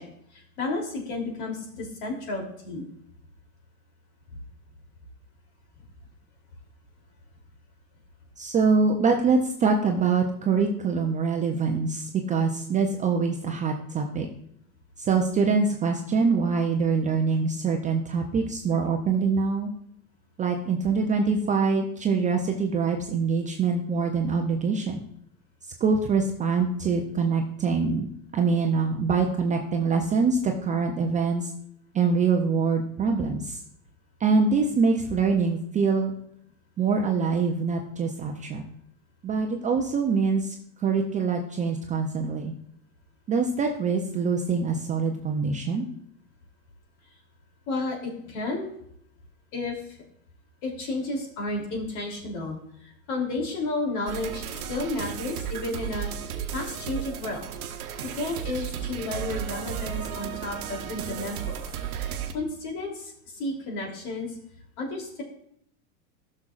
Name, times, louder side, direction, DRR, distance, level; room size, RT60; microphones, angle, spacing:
voice 1, 0.0-2.8 47.7-48.7 49.5-50.0 50.6-57.5 58.1-61.6 62.3-64.4 64.8-65.2, left 2 dB, 55° left, 0 dB, 3.1 m, -32 dB
voice 2, 8.4-14.3 15.0-19.7 20.4-25.0 25.8-31.5 31.9-33.6 34.2-36.1 36.8-38.6 39.2-42.5 43.3-45.9, right 4 dB, 15° right, 3 dB, 0.5 m, -24 dB
sound 1, 54.1-62.3, right 9 dB, 70° right, 1.0 m, -34 dB
12.5 x 6.4 x 2.4 m, 0.70 s
hypercardioid pair, 115°, 44 cm